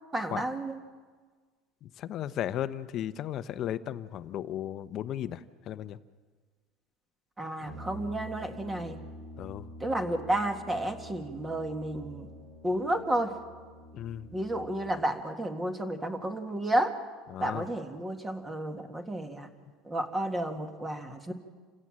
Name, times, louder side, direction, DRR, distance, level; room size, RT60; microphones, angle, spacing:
voice 1, 0.1-0.8 7.4-9.0 9.8-12.3 12.6-13.3 14.3-16.9 17.4-19.5 19.9-21.3, right 1 dB, 15° right, 6 dB, 1.9 m, -31 dB
voice 2, 2.0-6.0 9.4-9.6 13.9-14.3 17.3-17.6, left 11 dB, 45° left, 13 dB, 0.9 m, -35 dB
Brass instrument, 7.6-15.1, equal, 80° right, 5.3 m, -47 dB
28.5 x 16.5 x 7.6 m, 1.5 s
supercardioid pair, 140°, 0 cm